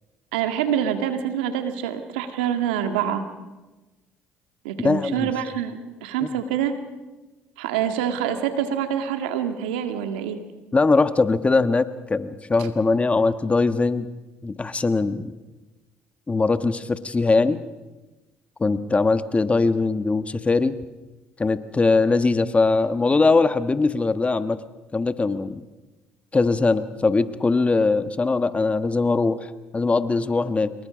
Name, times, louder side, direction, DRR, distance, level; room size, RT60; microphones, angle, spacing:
voice 1, 0.3-3.3 4.6-6.8 7.6-10.4, right 9 dB, 90° right, 7 dB, 1.9 m, -26 dB
voice 2, 4.8-5.3 10.7-14.1 14.4-15.3 16.3-17.6 18.6-20.8 21.4-24.6 24.9-25.6 26.3-30.7, left 3 dB, 25° left, 11 dB, 1.4 m, -21 dB
27.0 x 22.0 x 5.2 m, 1.1 s
supercardioid pair, 70°, 5 cm